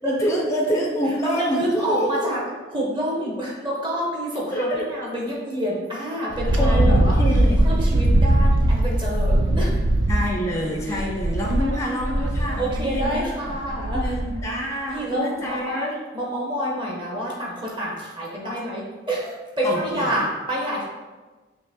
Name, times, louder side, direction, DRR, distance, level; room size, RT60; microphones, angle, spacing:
voice 1, 0.0-2.5 4.5-4.9 6.6-7.6 10.1-16.0 19.6-20.2, equal, 15° left, 0 dB, 0.5 m, -27 dB
voice 2, 1.2-2.4 2.7-7.2 7.6-9.7 10.9-11.0 12.6-14.1 14.9-20.8, equal, 25° right, -4 dB, 0.9 m, -28 dB
Wind, 6.3-14.5, right 1 dB, 80° right, 0.5 m, -21 dB
5.7 x 2.9 x 2.8 m, 1.3 s
head